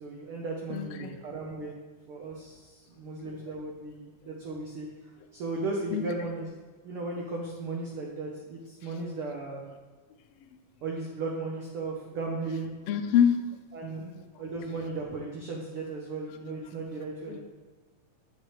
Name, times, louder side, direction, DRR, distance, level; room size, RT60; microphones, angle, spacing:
voice 1, 0.0-1.7 2.1-4.9 5.3-6.5 6.8-9.6 10.8-12.8 13.7-17.4, right 3 dB, 85° right, -1 dB, 1.2 m, -36 dB
voice 2, 0.7-1.1 3.2-3.4 5.9-6.0 10.4-10.5 12.9-13.4 13.9-14.0 17.3-17.4, left 8 dB, 85° left, 5 dB, 1.3 m, -26 dB
8.7 x 6.5 x 3.1 m, 1.4 s
omnidirectional pair, 3.5 m